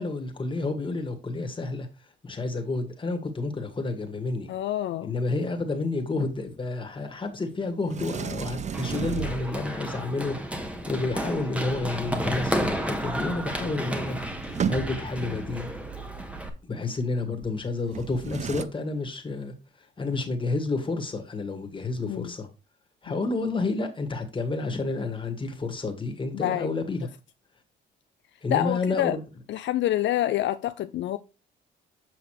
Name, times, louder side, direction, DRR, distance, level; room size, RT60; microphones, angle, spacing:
voice 1, 0.0-1.9 2.2-4.5 5.0-14.2 14.7-15.7 16.7-19.5 20.0-22.5 23.0-27.1 28.4-29.2, left 3 dB, 25° left, 1.9 m, -30 dB
voice 2, 4.5-5.1 22.0-22.3 23.1-23.2 26.3-26.7 28.5-29.2 29.5-31.2, left 13 dB, 70° left, 0.5 m, -27 dB
Sliding door, 7.9-9.8 13.4-13.5 13.7-15.3 17.9-18.6, right 6 dB, 35° right, 0.6 m, -33 dB
Run, 8.7-16.5, equal, 5° right, 1.3 m, -32 dB
7.6 x 5.7 x 3.2 m
cardioid pair, 90°, 20 cm